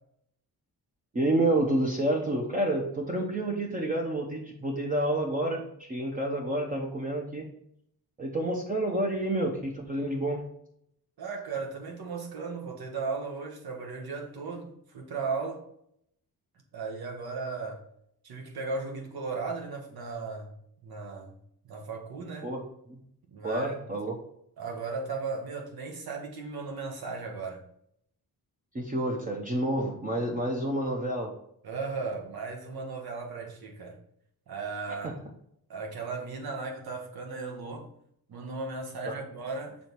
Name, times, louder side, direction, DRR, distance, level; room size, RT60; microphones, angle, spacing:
voice 1, 1.1-7.5 8.2-10.4 22.4-22.6 22.9-23.0 23.4-24.1 28.7-31.3 35.0-35.1 39.1-39.2, right 1 dB, 20° right, 0.8 m, -29 dB
voice 2, 11.2-15.7 16.7-17.8 18.2-20.5 20.8-21.4 21.6-22.5 23.3-23.8 24.6-27.6 31.6-34.0 34.5-35.2 35.7-37.9 38.3-39.8, right 4 dB, 70° right, 1.5 m, -36 dB
6.3 x 4.1 x 4.6 m
wide cardioid pair, 175°, 38 cm